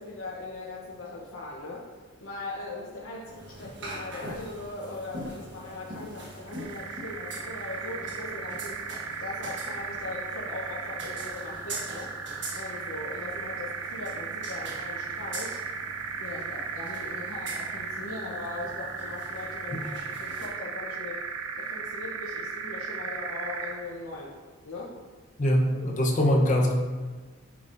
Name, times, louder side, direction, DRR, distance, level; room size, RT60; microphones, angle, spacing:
voice 1, 0.0-1.9 2.2-8.8 9.2-12.1 12.5-15.6 16.2-21.3 21.6-24.4 24.6-25.0, left 2 dB, 85° left, -4 dB, 1.0 m, -39 dB
sound 1, 3.3-20.5, right 2 dB, 55° right, 1.4 m, -43 dB
sound 2, 6.5-23.9, right 5 dB, 80° right, 0.6 m, -36 dB
voice 2, 25.4-26.7, equal, 35° left, -1 dB, 0.9 m, -23 dB
9.3 x 6.1 x 2.6 m, 1.4 s
head